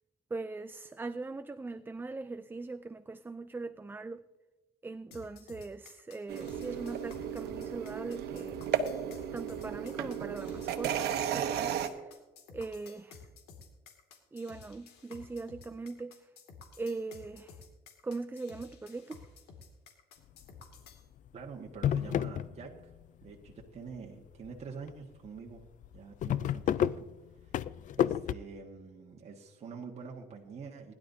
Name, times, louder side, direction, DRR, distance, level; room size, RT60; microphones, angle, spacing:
voice 1, 0.3-4.3 4.8-8.6 9.3-12.1 12.5-13.2 14.3-16.3 16.8-17.6 18.0-19.2, right 3 dB, 10° right, 0.4 m, -40 dB
sound 1, 5.1-21.0, left 5 dB, 85° left, 2.3 m, -53 dB
sound 2, 6.3-11.9, right 9 dB, 75° right, 1.2 m, -34 dB
sound 3, 20.4-20.8 21.3-21.4 21.7-23.0 23.3-23.9 24.4-24.6 24.9-25.0 25.3-25.4 25.7-28.3, left 10 dB, 50° left, 0.4 m, -30 dB
voice 2, 21.3-22.9 23.2-25.6 25.9-27.1 27.4-30.9, right 5 dB, 40° right, 1.6 m, -46 dB
20.0 x 11.5 x 2.8 m
cardioid pair, 110°, 17 cm